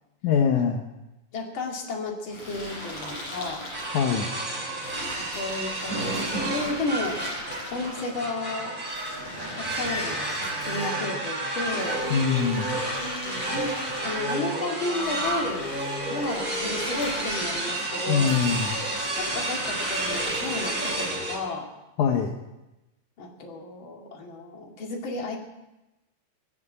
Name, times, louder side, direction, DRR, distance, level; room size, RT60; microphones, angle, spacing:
voice 1, 0.2-0.8 3.9-4.3 12.1-12.7 18.1-18.8 22.0-22.3, left 6 dB, 75° left, 2 dB, 1.8 m, -23 dB
voice 2, 1.3-3.7 5.2-8.8 9.6-12.0 13.2-15.8 16.1-18.4 19.2-21.7 23.2-25.4, left 2 dB, 35° left, 0 dB, 2.3 m, -33 dB
sound 1, 2.3-4.2 4.8-8.1 8.8-11.0 11.6-14.2 14.9-17.7 18.2-21.2, left 1 dB, 60° left, 9.7 m, -39 dB
sound 2, 3.7-21.4, right 1 dB, 15° right, 2.7 m, -30 dB
20.0 x 7.3 x 8.7 m, 0.99 s
omnidirectional pair, 5.0 m